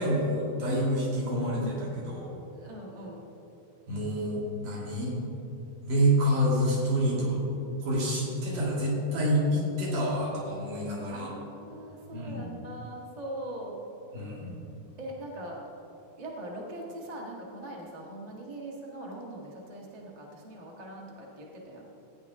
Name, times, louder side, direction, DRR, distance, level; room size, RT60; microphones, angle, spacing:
voice 1, 0.0-2.3 3.9-5.2 5.8-7.4 7.8-11.3 12.1-12.4 14.1-14.6, equal, 80° right, -5 dB, 4.0 m, -28 dB
voice 2, 2.5-3.3 11.1-13.8 15.0-15.7 16.2-21.9, right 1 dB, 50° right, -2 dB, 0.4 m, -41 dB
15.0 x 9.6 x 3.6 m, 2.9 s
omnidirectional pair, 3.6 m